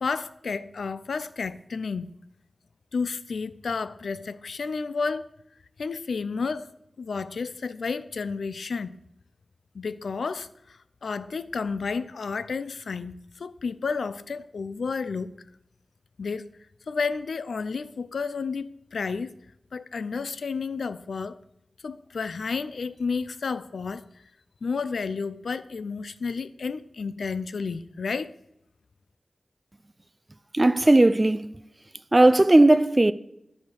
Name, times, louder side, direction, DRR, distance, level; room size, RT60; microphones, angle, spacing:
voice 1, 0.0-2.1 2.9-5.3 5.8-6.7 7.0-8.9 9.7-15.4 16.2-16.5 16.9-19.3 19.7-21.4 21.8-24.1 24.6-28.3, left 4 dB, 90° left, 0.4 m, -31 dB
voice 2, 30.5-31.6 32.1-33.1, right 2 dB, 25° right, 0.3 m, -17 dB
10.5 x 3.5 x 6.3 m
wide cardioid pair, 85°, 0 cm